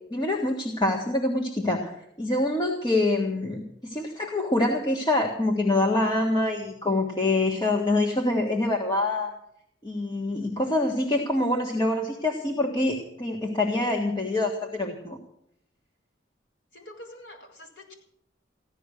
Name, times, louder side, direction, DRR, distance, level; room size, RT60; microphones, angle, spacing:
voice 1, 0.1-9.3 9.8-15.2, left 2 dB, 25° left, 1 dB, 1.6 m, -25 dB
voice 2, 16.7-17.9, left 1 dB, 65° left, 1 dB, 4.4 m, -46 dB
15.5 x 12.0 x 6.5 m, 0.74 s
head